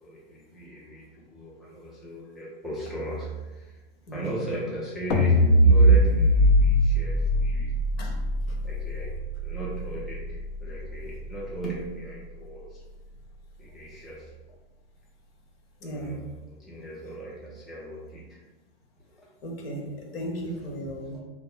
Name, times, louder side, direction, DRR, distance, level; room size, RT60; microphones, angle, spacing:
voice 1, 0.0-3.8 4.1-7.7 8.6-9.1 9.4-12.8 13.6-14.3 15.8-16.2 16.6-18.4 19.2-19.3 20.2-20.4 21.0-21.2, right 1 dB, ahead, -7 dB, 0.3 m, -38 dB
sound 1, 5.1-11.4, equal, 45° left, 0.6 m, -22 dB
voice 2, 15.8-16.2 19.4-21.2, right 1 dB, 70° left, 1 dB, 0.9 m, -35 dB
2.9 x 2.0 x 3.7 m, 1.2 s
hypercardioid pair, 125°, 31 cm